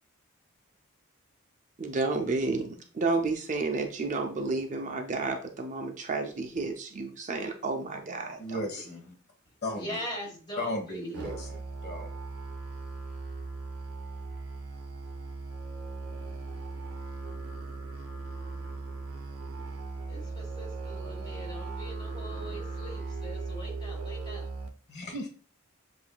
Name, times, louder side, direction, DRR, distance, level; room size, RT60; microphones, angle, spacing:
voice 1, 1.8-8.7, right 3 dB, 35° right, 3 dB, 0.5 m, -31 dB
voice 2, 8.4-9.1 9.6-9.9 10.6-11.5 11.8-12.1 24.9-25.3, left 1 dB, 50° left, 3 dB, 1.1 m, -35 dB
voice 3, 9.7-11.2 20.1-24.5, equal, 20° left, -1 dB, 1.4 m, -41 dB
Musical instrument, 11.1-24.7, right 3 dB, 80° right, 0.7 m, -38 dB
7.6 x 2.6 x 2.2 m, 0.39 s
head